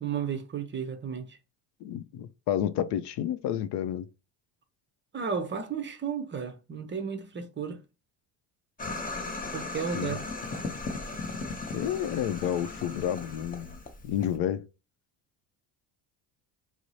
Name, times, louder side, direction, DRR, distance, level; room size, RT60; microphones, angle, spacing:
voice 1, 0.0-1.4 5.1-7.8 9.5-10.2, right 6 dB, 25° right, 0.6 m, -33 dB
voice 2, 1.8-4.1 9.9-10.1 11.7-13.8 14.0-14.6, left 10 dB, 65° left, 0.6 m, -30 dB
sound 1, 8.8-14.4, left 3 dB, 20° left, 0.6 m, -37 dB
4.5 x 2.0 x 2.7 m
supercardioid pair, 100°, 44 cm